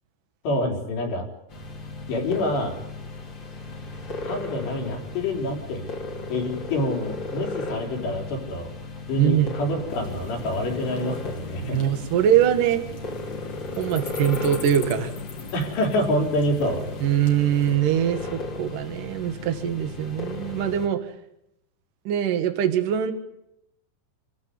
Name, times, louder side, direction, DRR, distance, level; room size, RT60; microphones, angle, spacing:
voice 1, 0.4-1.3 2.1-2.8 4.2-5.8 6.3-8.7 9.1-11.8 15.5-16.8, left 1 dB, 65° left, 1 dB, 5.8 m, -26 dB
sound 1, 1.5-20.9, left 2 dB, 30° left, 3.2 m, -36 dB
voice 2, 9.2-9.5 11.6-12.8 13.8-15.1 17.0-21.0 22.0-23.1, right 10 dB, 55° right, 7 dB, 2.9 m, -23 dB
sound 2, 9.9-17.8, left 5 dB, 45° left, 3.5 m, -40 dB
27.5 x 15.5 x 9.6 m, 0.81 s
omnidirectional pair, 5.3 m